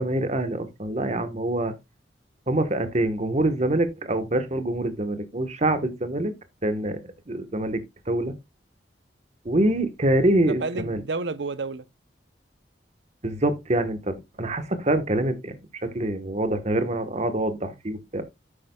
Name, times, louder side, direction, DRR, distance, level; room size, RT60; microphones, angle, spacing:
voice 1, 0.0-1.7 2.5-6.3 6.6-7.0 7.3-8.3 9.4-11.0 13.2-15.6 15.8-18.2, right 1 dB, 40° right, 1.2 m, -25 dB
voice 2, 10.2-11.8, right 3 dB, 75° right, 0.7 m, -31 dB
9.9 x 8.5 x 2.3 m
head